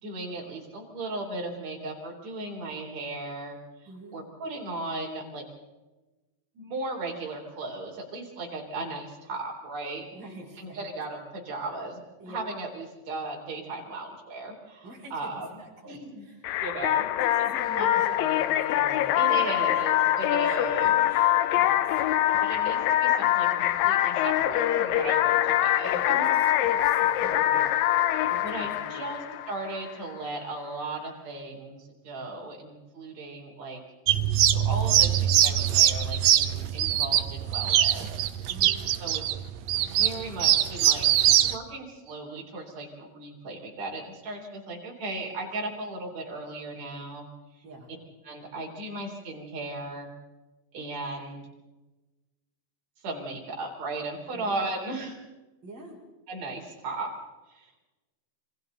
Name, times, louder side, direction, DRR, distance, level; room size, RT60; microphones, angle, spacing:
voice 1, 0.0-5.4 6.5-10.0 10.6-12.0 12.3-15.5 15.8-16.3 16.6-17.1 17.8-18.0 19.1-21.0 22.4-26.3 28.4-33.8 34.5-38.6 39.0-39.2 39.8-47.3 47.6-47.7 48.2-50.1 50.7-51.4 53.0-55.2 56.3-57.1 57.5-57.7, right 2 dB, 50° right, -1 dB, 4.8 m, -36 dB
voice 2, 3.9-4.2 10.1-10.8 12.2-12.4 14.8-16.6 17.2-19.5 19.7-19.8 20.4-21.9 25.8-26.2 26.5-29.1 38.5-38.8 47.6-47.9 54.3-54.6 55.6-56.0, right 2 dB, 30° right, -2 dB, 5.9 m, -45 dB
sound 1, 16.4-29.9, left 13 dB, 80° left, 2.5 m, -24 dB
sound 2, 34.1-41.5, right 11 dB, 75° right, 1.7 m, -23 dB
27.5 x 25.0 x 4.0 m, 1.1 s
omnidirectional pair, 4.0 m